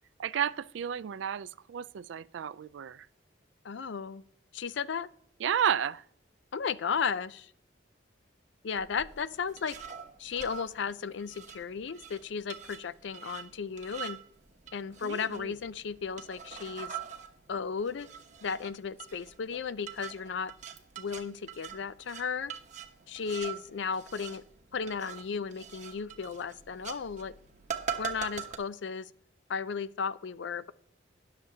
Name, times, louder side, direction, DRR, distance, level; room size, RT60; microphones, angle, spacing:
voice 1, 0.2-3.1 5.4-6.0 15.0-15.5, right 8 dB, 75° right, 0.3 m, -32 dB
voice 2, 3.6-4.2 4.5-5.1 6.5-7.5 8.6-9.8 10.2-14.2 14.7-17.0 17.5-18.1 18.4-20.5 21.0-22.5 23.1-24.4 24.7-27.3 28.0-29.1 29.5-30.7, left 6 dB, 70° left, 0.4 m, -35 dB
sound 1, 8.8-28.6, right 8 dB, 40° right, 0.9 m, -44 dB
20.0 x 6.8 x 2.8 m
head